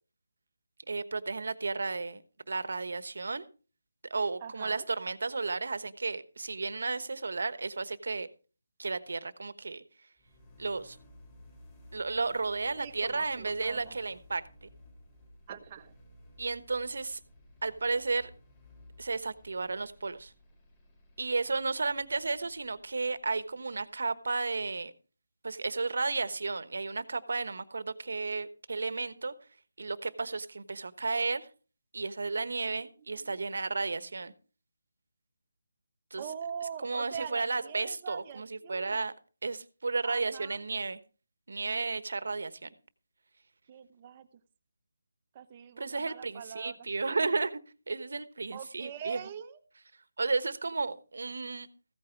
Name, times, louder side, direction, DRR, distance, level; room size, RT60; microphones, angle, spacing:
voice 1, 0.9-2.2 2.5-3.4 4.1-8.3 8.8-9.8 10.6-11.0 11.9-14.7 16.4-17.2 17.6-18.3 19.0-20.3 21.2-24.9 25.4-29.3 29.8-31.5 31.9-34.3 36.1-36.2 36.8-39.1 39.4-41.0 41.5-42.7 45.8-47.6 47.9-49.2 50.2-51.7, right 3 dB, 65° right, 1.2 m, -33 dB
voice 2, 4.4-4.8 12.8-14.0 15.5-15.9 32.7-33.4 36.2-39.0 40.0-40.7 43.7-44.3 45.3-46.8 47.1-47.2 48.5-49.6, right 8 dB, 25° right, 0.9 m, -43 dB
sound 1, 10.2-24.0, left 1 dB, 15° left, 4.0 m, -57 dB
15.0 x 9.0 x 4.6 m
figure-of-eight pair, 170°, 0 cm